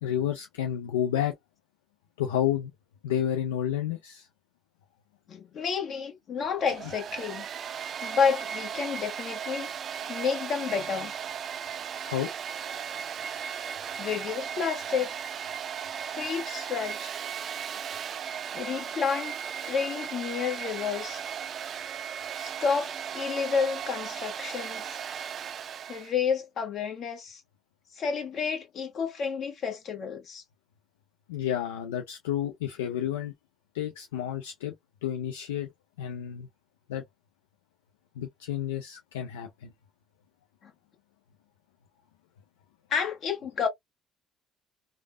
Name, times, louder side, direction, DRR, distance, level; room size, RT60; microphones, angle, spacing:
voice 1, 0.0-1.3 2.2-2.7 3.0-4.3 12.0-12.3 31.3-33.3 33.7-34.7 35.0-35.7 36.0-36.5 36.9-37.0 38.2-39.7, left 10 dB, 90° left, 0.4 m, -30 dB
voice 2, 5.3-7.5 8.0-9.7 10.1-11.1 14.0-15.1 16.1-17.1 18.5-19.4 19.7-21.2 22.4-25.0 25.9-27.4 27.9-30.4 40.6-40.7 42.9-43.7, left 6 dB, 55° left, 1.1 m, -30 dB
Domestic sounds home sounds, 6.6-26.1, right 8 dB, 55° right, 0.4 m, -36 dB
3.2 x 2.1 x 2.2 m
hypercardioid pair, 60°, 0 cm